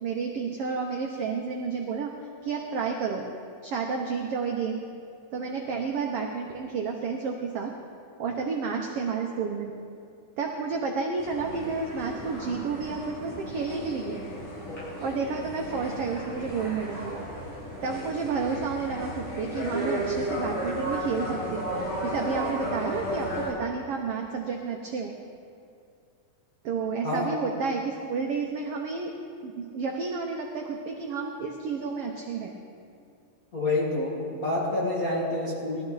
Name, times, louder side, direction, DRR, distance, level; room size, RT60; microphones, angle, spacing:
voice 1, 0.0-2.1 2.4-3.2 3.6-4.8 5.3-7.7 8.2-9.7 10.4-14.2 15.0-17.3 17.8-21.7 22.0-25.1 26.6-29.1 29.4-32.5, right 5 dB, 85° right, 1 dB, 1.3 m, -31 dB
sound 1, 11.2-23.5, equal, 65° left, 5.4 m, -34 dB
voice 2, 27.0-27.4 33.5-35.8, left 2 dB, 40° left, -5 dB, 1.3 m, -28 dB
19.0 x 13.0 x 4.0 m, 2.4 s
omnidirectional pair, 3.9 m